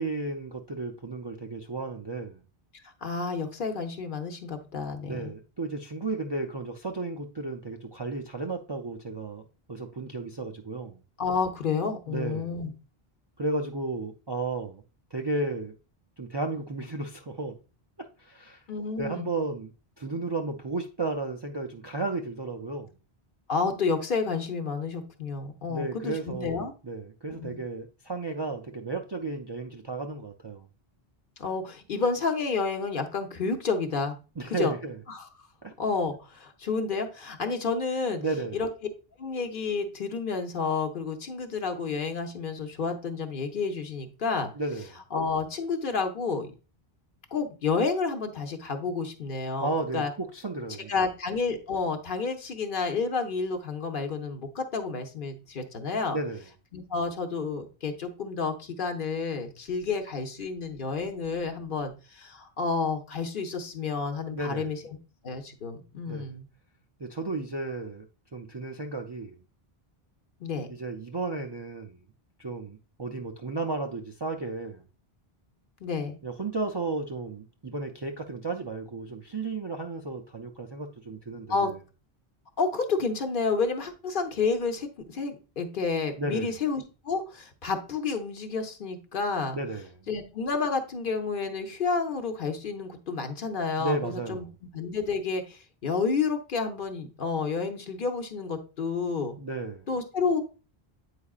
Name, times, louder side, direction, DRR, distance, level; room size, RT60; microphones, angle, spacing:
voice 1, 0.0-2.4 5.0-11.0 12.1-12.6 13.4-14.8 15.1-15.7 16.2-17.5 18.0-18.6 19.0-19.7 20.0-22.9 25.7-30.7 34.4-35.0 35.6-35.7 38.2-38.6 44.5-44.9 49.6-50.9 56.1-56.5 64.3-64.7 66.1-66.4 67.0-68.1 68.3-69.4 70.7-72.0 72.4-74.8 76.2-81.7 86.2-86.6 89.5-89.9 93.8-94.5 99.4-99.9, right 3 dB, 40° right, 0.4 m, -33 dB
voice 2, 3.0-5.3 11.2-12.7 18.7-19.3 23.5-26.7 27.4-27.6 31.4-34.2 34.5-34.7 35.1-35.3 35.8-38.2 38.5-38.7 39.2-44.5 45.1-46.5 47.3-50.1 50.9-56.2 56.7-64.8 65.2-66.5 70.4-70.7 75.8-76.2 81.5-81.7 82.6-89.6 90.1-94.5 94.7-99.4 99.9-100.4, left 4 dB, 60° left, 1.0 m, -30 dB
8.4 x 4.8 x 2.3 m
omnidirectional pair, 1.0 m